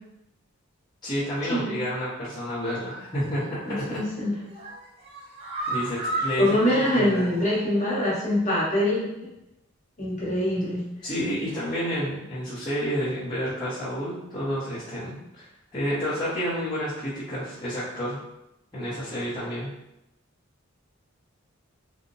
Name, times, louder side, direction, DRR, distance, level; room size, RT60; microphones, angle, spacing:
voice 1, 1.0-4.0 5.7-7.4 11.0-18.2 18.7-19.7, equal, 20° left, -14 dB, 0.8 m, -30 dB
voice 2, 3.6-4.3 6.4-9.3 10.0-10.8, left 1 dB, 35° left, -8 dB, 1.1 m, -24 dB
sound 1, 3.7-4.1 4.4-7.8 8.2-8.3 8.6-8.7, right 1 dB, 30° right, 0.6 m, -34 dB
2.8 x 2.0 x 2.6 m, 0.88 s
head